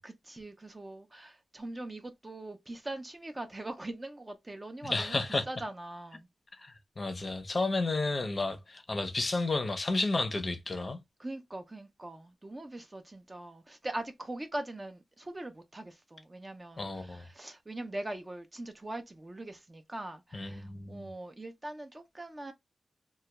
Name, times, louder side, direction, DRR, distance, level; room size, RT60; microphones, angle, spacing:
voice 1, 0.0-5.2 5.5-6.3 11.2-22.5, right 1 dB, 20° right, 0.4 m, -42 dB
voice 2, 4.8-5.4 6.5-11.0 16.8-17.2 20.3-21.1, left 2 dB, 35° left, 0.5 m, -32 dB
2.2 x 2.1 x 2.8 m
wide cardioid pair, 105°, 0 cm